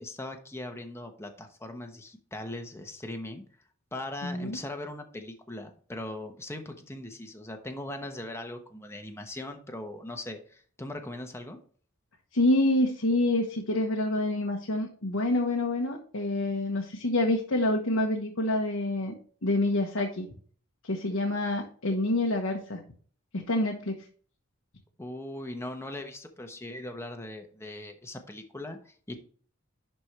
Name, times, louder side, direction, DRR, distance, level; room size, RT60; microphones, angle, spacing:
voice 1, 0.0-3.4 3.9-11.6 25.0-29.2, left 1 dB, 15° left, 4 dB, 1.0 m, -40 dB
voice 2, 4.2-4.6 12.3-19.1 19.4-20.3 20.9-22.8 23.3-24.0, left 1 dB, 85° left, 1 dB, 1.3 m, -27 dB
11.0 x 4.5 x 3.3 m, 0.44 s
head